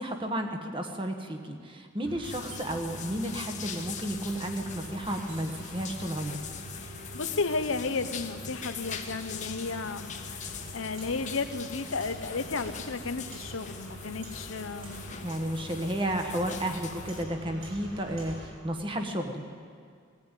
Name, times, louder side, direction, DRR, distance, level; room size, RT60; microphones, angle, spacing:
voice 1, 0.0-6.4 15.2-19.4, right 1 dB, 25° right, 4 dB, 1.4 m, -32 dB
sound 1, 2.0-18.4, right 1 dB, 55° right, 6.2 m, -45 dB
sound 2, 2.2-17.2, left 7 dB, 35° left, 1.3 m, -43 dB
sound 3, 2.5-18.8, right 1 dB, 85° right, 7.3 m, -53 dB
voice 2, 6.8-15.2, left 4 dB, 70° left, 10 dB, 0.9 m, -33 dB
20.0 x 15.0 x 9.2 m, 2.2 s
head